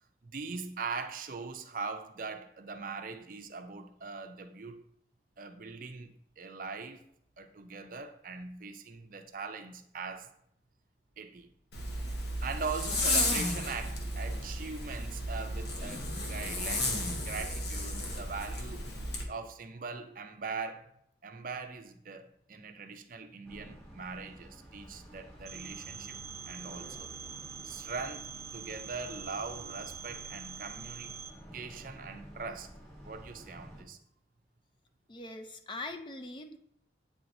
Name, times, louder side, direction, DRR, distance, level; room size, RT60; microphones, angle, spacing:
voice 1, 0.2-4.8 5.4-7.1 7.4-10.3 11.2-11.5 12.4-18.9 19.3-20.9 21.2-26.2 26.5-27.1 27.6-31.2 31.5-32.7 33.0-34.0, right 4 dB, 50° right, 0.5 m, -41 dB
Zipper (clothing), 11.7-19.2, left 2 dB, 75° left, 1.1 m, -33 dB
sound 1, 23.4-33.8, equal, 10° left, 1.2 m, -51 dB
Telephone, 25.5-31.3, right 7 dB, 15° right, 1.0 m, -45 dB
voice 2, 35.1-36.6, left 2 dB, 25° left, 0.4 m, -42 dB
8.5 x 4.5 x 2.7 m
head